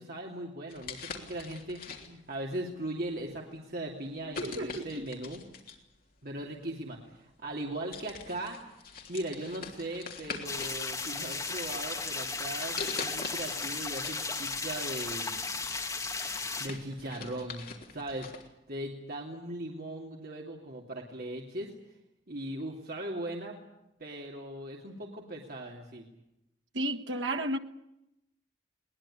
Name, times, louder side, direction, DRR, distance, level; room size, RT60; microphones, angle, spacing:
voice 1, 0.0-5.4 6.2-15.5 16.6-17.7 17.9-21.7 22.3-23.6 24.0-26.1, right 1 dB, 55° right, 2.8 m, -39 dB
sound 1, 0.7-2.4 3.1-3.3 4.3-5.9 7.0-7.1 7.5-7.7 7.9-10.8 11.2-11.9 12.8-14.2 14.6-14.7 15.2-18.5, left 4 dB, 50° left, 3.3 m, -43 dB
voice 2, 4.2-5.0 26.7-27.6, right 1 dB, 85° right, 1.5 m, -33 dB
sound 2, 10.5-16.7, left 4 dB, 20° left, 2.6 m, -35 dB
21.5 x 20.0 x 9.9 m
head